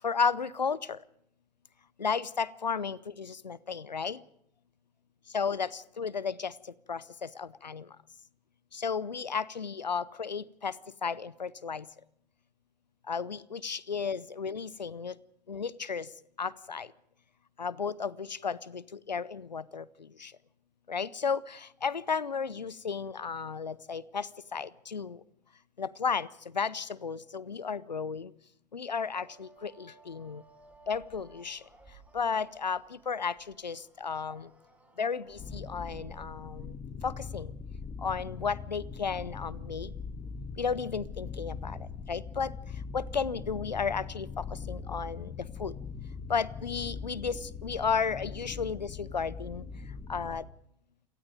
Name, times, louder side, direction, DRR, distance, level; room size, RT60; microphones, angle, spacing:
voice 1, 0.0-1.0 2.0-4.2 5.3-6.5 6.9-7.9 8.7-10.8 11.0-11.9 13.1-15.2 15.5-16.1 16.4-16.9 17.6-19.8 20.2-20.3 20.9-25.2 25.8-26.3 26.5-28.3 28.7-30.4 30.9-31.6 32.1-34.5 35.0-36.7 37.0-37.5 38.0-39.9 40.6-42.5 42.9-45.7 46.3-49.7 50.1-50.5, left 5 dB, 85° left, 22 dB, 0.7 m, -33 dB
sound 1, 28.9-35.6, right 3 dB, 5° right, 5.4 m, -59 dB
sound 2, 35.4-50.4, left 5 dB, 25° left, 2.0 m, -41 dB
28.5 x 18.5 x 5.2 m, 0.72 s
figure-of-eight pair, 85°, 21 cm